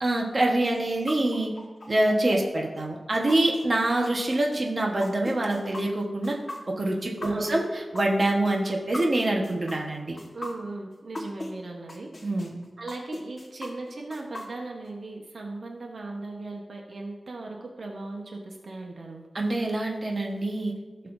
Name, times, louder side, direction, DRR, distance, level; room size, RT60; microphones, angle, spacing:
voice 1, 0.0-1.5 1.9-6.4 6.8-10.2 12.2-12.6 19.3-20.7, right 1 dB, 40° right, 0 dB, 1.3 m, -25 dB
sound 1, 0.6-11.5 11.9-14.9, left 1 dB, 40° left, 1.4 m, -39 dB
voice 2, 7.3-7.6 10.3-12.1 12.8-19.3, right 2 dB, 70° right, 1 dB, 1.1 m, -38 dB
16.0 x 6.7 x 2.7 m, 1.3 s
wide cardioid pair, 105°, 0 cm